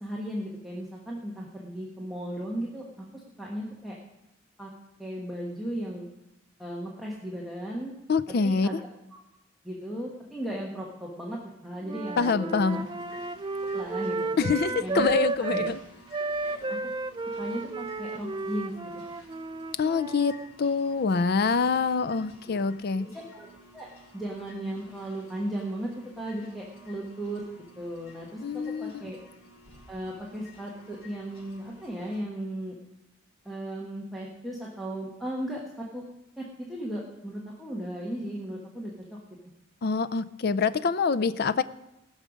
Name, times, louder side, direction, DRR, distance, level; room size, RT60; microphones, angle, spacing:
voice 1, 0.0-4.0 4.6-4.7 5.0-6.1 6.6-7.9 8.4-8.8 9.6-12.8 13.7-14.4 14.8-15.0 15.5-15.6 16.5-16.8 17.4-18.9 22.5-22.6 23.0-23.5 23.7-23.9 24.1-27.4 27.8-29.2 29.9-32.8 33.4-36.0 36.4-39.2, right 1 dB, ahead, -5 dB, 1.3 m, -36 dB
voice 2, 8.1-8.7 12.2-12.8 14.4-15.8 19.8-23.1 28.4-29.1 39.8-41.6, left 4 dB, 50° left, 15 dB, 0.4 m, -25 dB
Wind instrument woodwind instrument, 11.8-15.7 16.1-20.5, right 3 dB, 25° right, 0.3 m, -33 dB
sound 1, 12.7-32.2, left 1 dB, 75° left, 4.7 m, -53 dB
19.0 x 6.5 x 5.2 m, 0.89 s
head